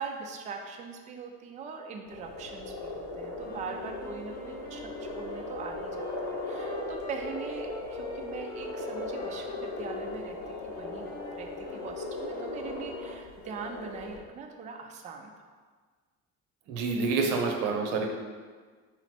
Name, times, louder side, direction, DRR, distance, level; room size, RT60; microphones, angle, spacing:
voice 1, 0.0-15.5, right 5 dB, 25° right, 3 dB, 0.3 m, -42 dB
sound 1, 2.1-14.2, left 2 dB, 75° left, 1.0 m, -38 dB
sound 2, 3.3-13.3, left 2 dB, 30° left, 0.8 m, -44 dB
voice 2, 16.7-18.1, right 4 dB, 90° right, 2 dB, 0.8 m, -27 dB
4.0 x 3.0 x 4.3 m, 1.5 s
cardioid pair, 130°, 31 cm